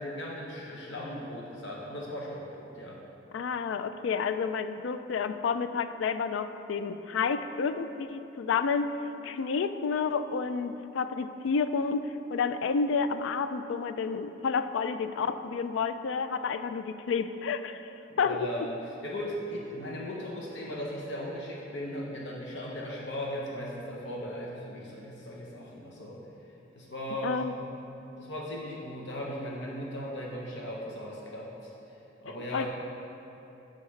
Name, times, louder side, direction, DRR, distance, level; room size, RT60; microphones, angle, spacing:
voice 1, 0.0-3.0 18.1-26.2 26.8-27.7 28.2-32.7, equal, 70° left, -3 dB, 0.9 m, -38 dB
voice 2, 3.3-8.9 9.2-17.8 18.2-18.5 27.2-27.5 32.5-32.7, left 5 dB, 85° left, 10 dB, 0.3 m, -30 dB
9.3 x 6.4 x 3.2 m, 3.0 s
head